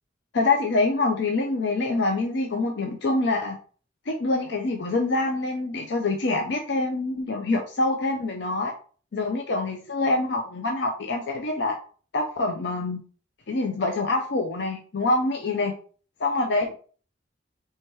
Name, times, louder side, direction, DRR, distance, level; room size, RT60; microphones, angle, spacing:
voice 1, 0.3-3.6 4.1-8.7 9.1-11.8 12.1-13.0 13.5-15.7 16.2-16.7, left 2 dB, 65° left, 2 dB, 0.6 m, -25 dB
4.6 x 3.3 x 3.1 m, 0.42 s
head